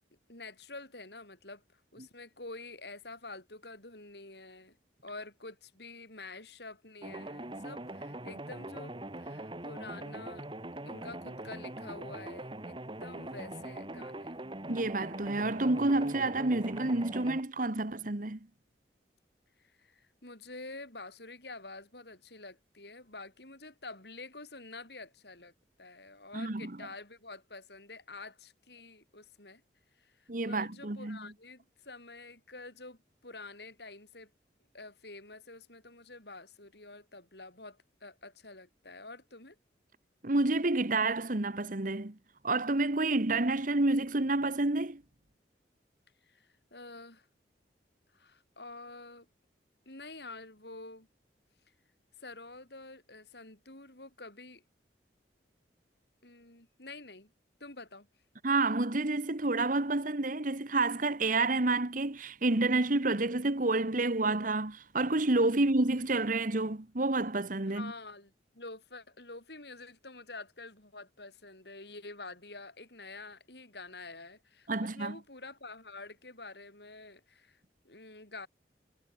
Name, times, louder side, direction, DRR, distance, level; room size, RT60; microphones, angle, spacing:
voice 1, 0.3-4.8 5.0-10.5 10.8-14.4 19.6-25.5 25.8-29.6 29.9-34.3 34.7-39.6 46.2-47.3 48.1-49.3 49.9-51.1 52.2-54.6 56.2-57.3 57.6-58.1 67.7-78.5, left 3 dB, 65° left, 7.8 m, -48 dB
sound 1, 7.0-17.4, right 1 dB, 25° right, 2.1 m, -42 dB
voice 2, 14.7-18.4 26.3-26.7 30.3-31.2 40.2-42.2 42.4-45.0 58.4-67.9 74.7-75.1, right 2 dB, 45° right, 1.4 m, -29 dB
head